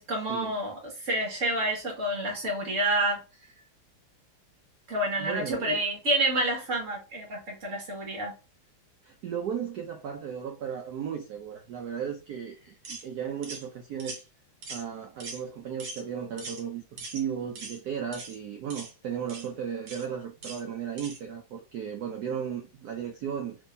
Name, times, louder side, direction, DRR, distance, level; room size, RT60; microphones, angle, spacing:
voice 1, 0.0-3.2 4.9-8.3, right 1 dB, 40° right, 1.6 m, -29 dB
voice 2, 5.2-5.8 9.0-14.2 14.7-23.6, right 8 dB, 80° right, 0.8 m, -35 dB
sound 1, 12.9-13.1 13.4-13.6 14.0-14.2 14.6-14.9 15.2-15.4 15.8-16.0 16.4-16.6 17.0-17.2 17.6-17.8 18.1-18.4 18.7-18.9 19.3-19.5 19.9-20.1 20.4-20.6 21.0-21.2, right 3 dB, 60° right, 1.5 m, -41 dB
3.6 x 3.5 x 2.6 m
omnidirectional pair, 2.3 m